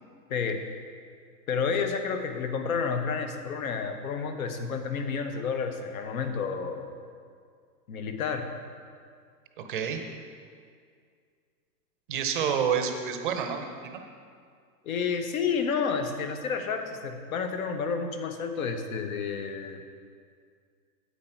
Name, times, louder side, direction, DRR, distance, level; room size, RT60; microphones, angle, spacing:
voice 1, 0.3-0.6 1.5-7.0 7.9-8.5 14.8-19.8, left 5 dB, 55° left, 7 dB, 1.1 m, -30 dB
voice 2, 9.6-10.0 12.1-14.0, right 7 dB, 30° right, 5 dB, 0.6 m, -29 dB
9.7 x 8.4 x 4.5 m, 2.1 s
hypercardioid pair, 165°, 49 cm